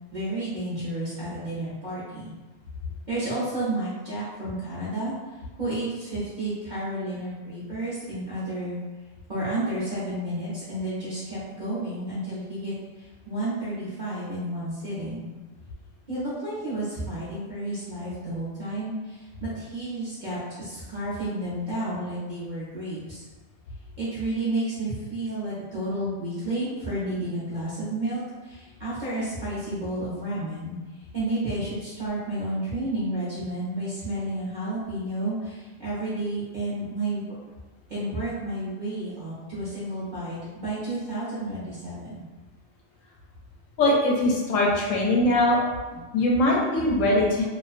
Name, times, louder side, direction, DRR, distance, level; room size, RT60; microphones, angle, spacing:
voice 1, 0.1-2.3 3.1-5.1 5.6-8.8 9.3-15.3 16.1-23.2 24.0-30.8 31.1-37.3 37.9-42.2, right 1 dB, 45° right, -11 dB, 0.7 m, -31 dB
voice 2, 43.8-45.6 45.9-47.4, left 1 dB, 80° left, -3 dB, 1.0 m, -22 dB
2.4 x 2.2 x 2.4 m, 1.2 s
omnidirectional pair, 1.3 m